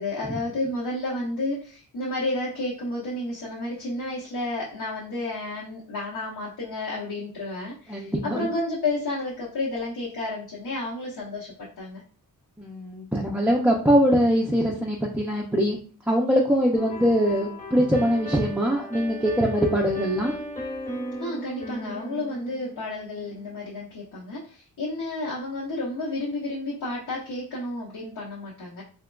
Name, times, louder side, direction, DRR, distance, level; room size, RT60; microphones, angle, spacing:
voice 1, 0.0-12.0 21.2-28.8, left 2 dB, 85° left, -6 dB, 1.0 m, -31 dB
voice 2, 7.9-8.5 12.6-15.8 16.1-20.4, equal, 5° right, -3 dB, 0.3 m, -22 dB
sound 1, 16.7-23.5, equal, 20° left, 0.9 m, -37 dB
3.5 x 2.8 x 2.2 m, 0.40 s
wide cardioid pair, 155°, 36 cm